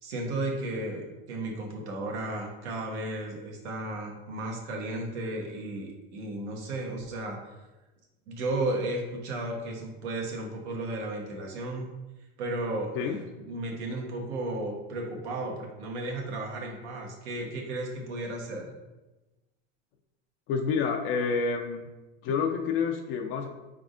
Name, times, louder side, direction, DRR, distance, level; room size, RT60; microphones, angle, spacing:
voice 1, 0.0-7.6 8.3-11.9 12.4-13.2 13.4-18.7, right 2 dB, 85° right, 0 dB, 1.2 m, -34 dB
voice 2, 20.5-21.9 22.2-23.5, left 5 dB, 40° left, 3 dB, 0.4 m, -28 dB
5.2 x 3.6 x 2.5 m, 1.1 s
supercardioid pair, 125°, 33 cm